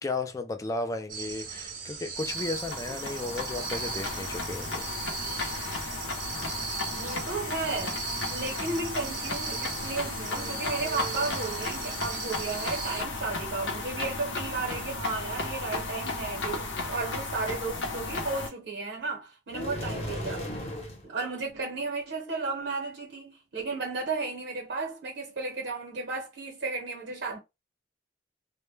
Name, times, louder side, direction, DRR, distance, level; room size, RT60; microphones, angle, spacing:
voice 1, 0.0-4.9, left 2 dB, 20° left, 0.3 m, -34 dB
sound 1, 1.1-13.0, right 5 dB, 50° right, 0.6 m, -38 dB
sound 2, 2.2-18.5, left 3 dB, 90° left, 0.7 m, -35 dB
voice 2, 6.8-8.0 8.3-20.5 21.0-27.4, right 3 dB, 80° right, 0.8 m, -34 dB
sound 3, 19.5-21.0, left 1 dB, 35° left, 0.8 m, -35 dB
2.1 x 2.1 x 3.1 m
head